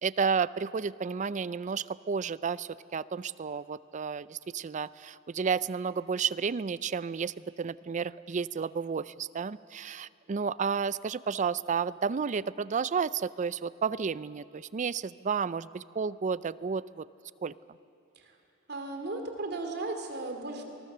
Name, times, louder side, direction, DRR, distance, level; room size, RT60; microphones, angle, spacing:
voice 1, 0.0-17.1 17.4-17.5, right 6 dB, 35° right, 18 dB, 0.4 m, -32 dB
voice 2, 18.7-20.6, right 2 dB, 55° right, 4 dB, 2.7 m, -36 dB
24.5 x 21.0 x 6.8 m, 2.9 s
head